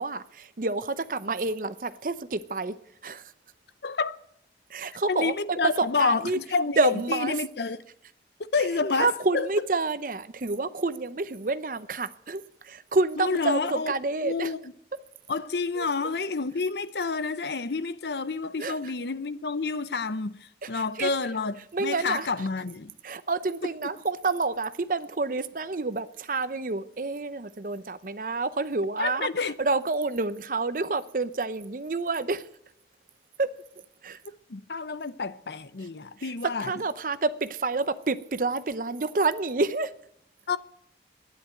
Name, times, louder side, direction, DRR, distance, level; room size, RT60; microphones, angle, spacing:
voice 1, 0.0-2.7 3.0-3.2 4.7-6.4 6.8-7.3 8.9-14.5 15.8-15.9 18.6-18.8 20.7-21.1 21.7-22.3 23.0-29.3 29.6-32.4 33.4-33.5 34.0-34.2 36.2-36.3 36.6-39.9, right 3 dB, 50° right, 0.7 m, -28 dB
voice 2, 3.8-4.2 5.1-7.8 8.5-9.5 13.2-13.9 14.2-14.6 15.3-20.4 20.7-22.9 23.6-23.9 29.0-29.6 34.5-36.7 40.5-40.6, left 4 dB, 70° left, 0.7 m, -29 dB
12.5 x 10.5 x 9.1 m
head